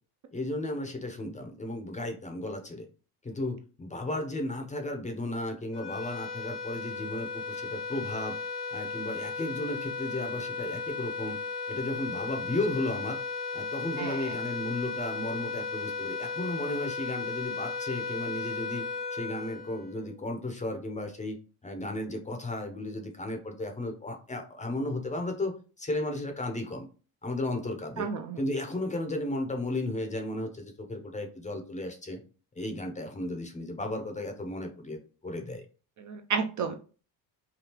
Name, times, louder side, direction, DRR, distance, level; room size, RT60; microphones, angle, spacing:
voice 1, 0.3-2.9 3.2-8.4 8.7-11.4 11.7-13.2 13.5-21.4 21.6-25.5 25.8-26.9 27.2-28.1 28.4-32.2 32.6-35.6, left 1 dB, 15° left, 4 dB, 0.5 m, -34 dB
sound 1, 5.7-20.3, left 4 dB, 90° left, 0.7 m, -35 dB
voice 2, 14.0-14.3 28.0-28.4 36.0-36.8, right 5 dB, 45° right, 5 dB, 0.4 m, -32 dB
3.5 x 2.3 x 2.8 m, 0.37 s
cardioid pair, 105°, 45 cm